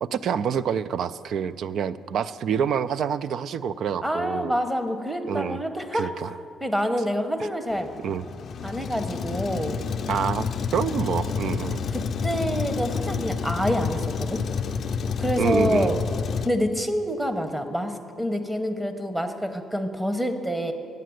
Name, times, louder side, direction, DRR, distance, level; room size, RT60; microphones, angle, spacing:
voice 1, 0.0-4.5 5.3-5.6 5.9-6.3 7.4-7.5 8.0-8.2 10.1-11.8 15.4-15.9, right 7 dB, 70° right, 16 dB, 0.3 m, -27 dB
voice 2, 4.0-6.1 6.6-7.9 8.6-9.8 11.9-14.5 15.2-16.0 16.4-20.7, equal, 10° right, 8 dB, 0.9 m, -27 dB
Truck, 7.7-16.5, left 6 dB, 55° left, 0.4 m, -29 dB
9.2 x 6.6 x 7.8 m, 2.5 s
cardioid pair, 90°, 0 cm